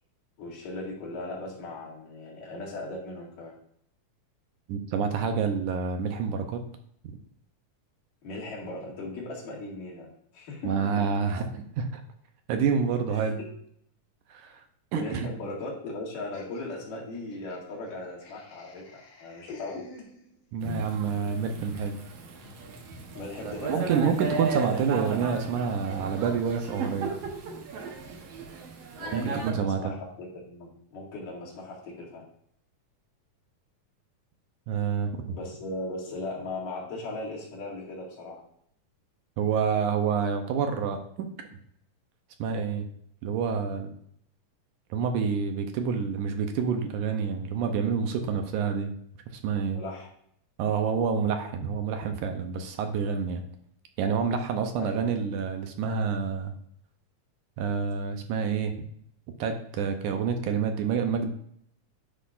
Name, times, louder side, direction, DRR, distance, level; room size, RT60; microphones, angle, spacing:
voice 1, 0.4-3.5 8.2-11.1 13.1-13.3 14.9-19.9 23.1-24.1 29.0-32.2 35.3-38.4 49.7-50.1 54.8-55.0, left 2 dB, 75° left, -4 dB, 3.7 m, -38 dB
voice 2, 4.7-6.6 7.1-7.2 10.6-12.0 12.5-13.4 14.3-14.6 14.9-15.3 20.5-22.0 23.4-27.1 29.1-29.9 34.7-35.4 39.4-41.3 42.4-42.9 43.2-43.9 44.9-48.9 49.4-49.8 50.6-53.4 54.0-56.5 57.6-58.7 59.4-61.3, right 6 dB, 75° right, 5 dB, 2.1 m, -28 dB
Laughter, 16.3-20.6, left 4 dB, 60° left, 2.3 m, -49 dB
Thunder / Rain, 20.6-29.5, right 4 dB, 60° right, 1.8 m, -35 dB
10.0 x 5.7 x 2.5 m, 0.68 s
omnidirectional pair, 3.8 m